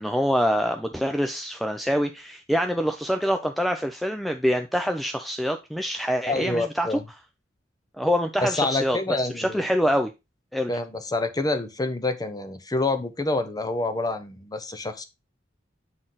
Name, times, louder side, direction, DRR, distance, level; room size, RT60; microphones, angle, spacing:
voice 1, 0.0-7.0 8.0-9.0 9.4-10.1 10.5-10.7, equal, ahead, 0.4 m, -25 dB
voice 2, 6.3-7.0 8.4-9.7 10.7-15.0, left 2 dB, 20° left, 0.8 m, -27 dB
7.6 x 4.0 x 3.9 m
head